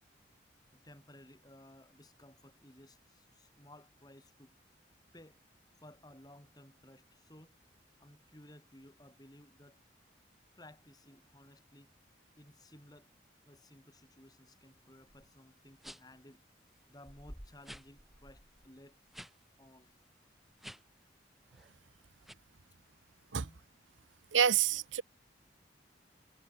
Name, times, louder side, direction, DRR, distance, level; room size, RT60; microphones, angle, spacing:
voice 1, 0.7-4.5 5.1-5.4 5.8-7.6 8.0-9.8 10.5-11.9 12.4-13.1 13.4-16.4 16.9-19.0 19.6-19.9 23.2-23.6, left 1 dB, 20° left, 6.2 m, -57 dB
sound 1, 15.1-15.3 15.8-16.2 16.7-16.8 17.0-19.3 19.6-19.8 20.5-21.0 21.4-21.8 22.2-22.3, equal, ahead, 1.9 m, -51 dB
voice 2, 24.3-25.0, right 8 dB, 80° right, 0.8 m, -27 dB
head